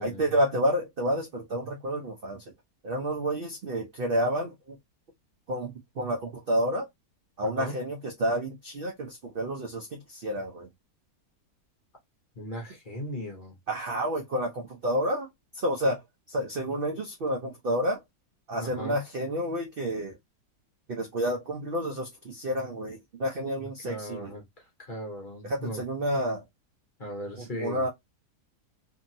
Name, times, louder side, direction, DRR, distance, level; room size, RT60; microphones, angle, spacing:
voice 1, 0.0-2.4 2.8-4.8 5.5-6.9 7.4-10.7 13.7-15.3 15.5-16.0 16.3-18.0 18.5-20.1 20.9-24.3 25.4-26.4 27.4-27.9, equal, 75° right, 0.5 m, -30 dB
voice 2, 12.4-13.6 18.6-19.0 23.8-25.8 27.0-27.8, equal, 45° left, 0.7 m, -37 dB
2.8 x 2.7 x 2.5 m
omnidirectional pair, 1.7 m